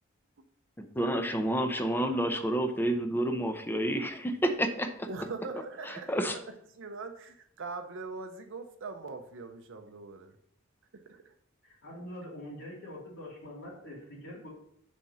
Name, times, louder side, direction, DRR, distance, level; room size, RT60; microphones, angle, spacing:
voice 1, 0.8-5.1 5.9-6.4, right 1 dB, 10° left, 6 dB, 0.7 m, -29 dB
voice 2, 5.1-6.4 6.7-10.3 10.9-11.3, right 3 dB, 65° right, 6 dB, 0.7 m, -42 dB
voice 3, 11.6-14.5, left 1 dB, 70° left, -8 dB, 2.6 m, -44 dB
6.2 x 4.4 x 5.4 m, 0.70 s
head